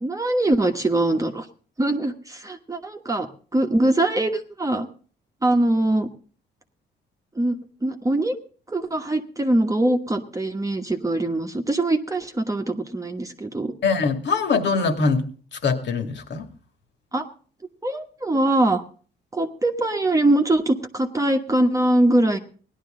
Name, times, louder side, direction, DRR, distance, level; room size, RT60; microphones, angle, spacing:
voice 1, 0.0-1.5 1.8-4.9 5.4-6.1 7.3-8.4 8.7-13.7 17.1-17.2 17.8-18.8 19.3-22.4, right 1 dB, 15° right, 4 dB, 1.2 m, -22 dB
voice 2, 13.8-15.2 15.6-16.5, left 4 dB, 60° left, 6 dB, 2.3 m, -22 dB
17.5 x 11.5 x 3.8 m, 0.41 s
cardioid pair, 90°, 20 cm